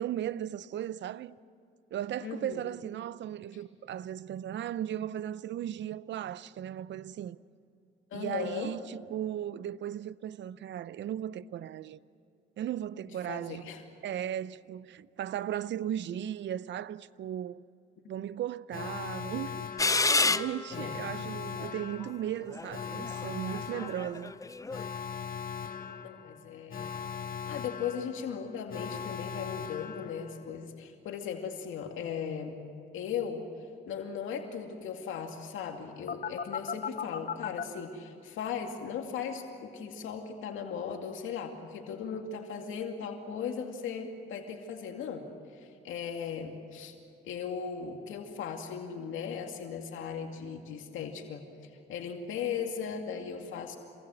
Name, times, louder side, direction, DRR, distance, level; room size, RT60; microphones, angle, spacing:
voice 1, 0.0-1.3 1.9-7.4 8.1-12.0 12.6-13.7 14.0-17.6 18.1-24.3, right 11 dB, 65° right, 0.7 m, -36 dB
voice 2, 2.2-2.6 8.1-8.7 13.3-13.8 20.7-21.0 23.7-23.9 26.0-26.9 27.5-32.6 32.9-33.4 33.9-45.3 45.5-46.9 47.2-53.8, left 7 dB, 80° left, 2.3 m, -37 dB
Alarm, 18.7-30.6 36.1-37.6, left 7 dB, 45° left, 1.4 m, -39 dB
sound 1, 19.8-20.9 21.6-21.7 22.5-24.9, left 3 dB, 15° left, 0.6 m, -29 dB
27.0 x 20.5 x 7.8 m
cardioid pair, 90°, 20 cm